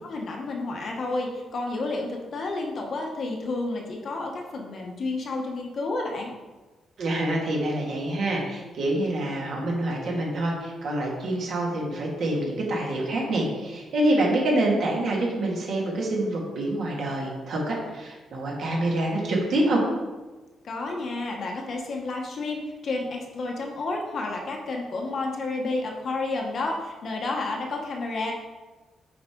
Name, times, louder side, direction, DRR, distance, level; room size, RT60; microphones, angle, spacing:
voice 1, 0.0-6.3 20.6-28.3, left 2 dB, 40° left, 1 dB, 1.0 m, -30 dB
voice 2, 7.0-19.8, right 1 dB, 55° right, -2 dB, 2.0 m, -26 dB
8.1 x 4.7 x 3.8 m, 1.2 s
cardioid pair, 170°, 0 cm